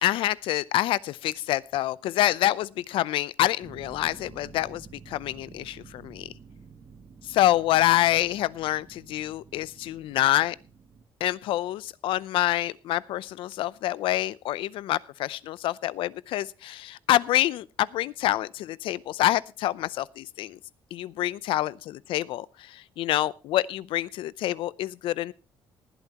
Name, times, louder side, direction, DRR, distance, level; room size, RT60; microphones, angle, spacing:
voice 1, 0.0-6.3 7.3-10.6 11.2-20.6 20.9-25.3, left 14 dB, 75° left, 0.6 m, -27 dB
sound 1, 3.6-11.0, right 5 dB, 30° right, 1.2 m, -50 dB
19.5 x 12.0 x 3.0 m
cardioid pair, 165°, 9 cm